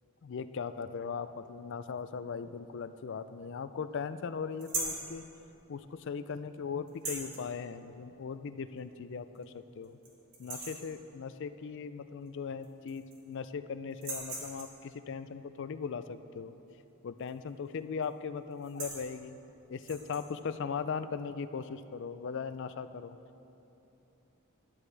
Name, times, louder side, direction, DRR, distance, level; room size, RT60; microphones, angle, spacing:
voice 1, 0.2-5.3 5.7-10.0 10.4-16.5 17.0-19.4 19.7-23.2, left 5 dB, 55° left, 12 dB, 0.4 m, -39 dB
sound 1, 4.6-5.1 6.9-7.4 8.8-8.9 9.3-9.4 9.8-10.1 10.3-10.9 12.3-12.4 12.6-13.3 13.9-14.8 17.2-17.5 17.8-18.1 18.5-19.1 19.8-20.2, right 3 dB, 65° right, 2.3 m, -39 dB
13.0 x 11.5 x 3.3 m, 2.9 s
head